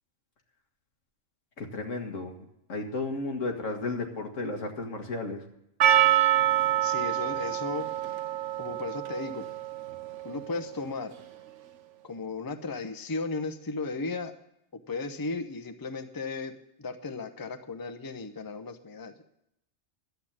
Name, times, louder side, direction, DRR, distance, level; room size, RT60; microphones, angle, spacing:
voice 1, 1.6-2.4 2.7-5.4, left 2 dB, 90° left, 3 dB, 2.1 m, -33 dB
Percussion, 5.8-10.8, right 12 dB, 75° right, 1.1 m, -26 dB
voice 2, 6.8-7.9 8.6-9.5 10.2-11.1 12.0-14.3 14.9-19.1, left 3 dB, 20° left, 8 dB, 0.7 m, -35 dB
12.0 x 8.0 x 8.7 m, 0.80 s
omnidirectional pair, 1.3 m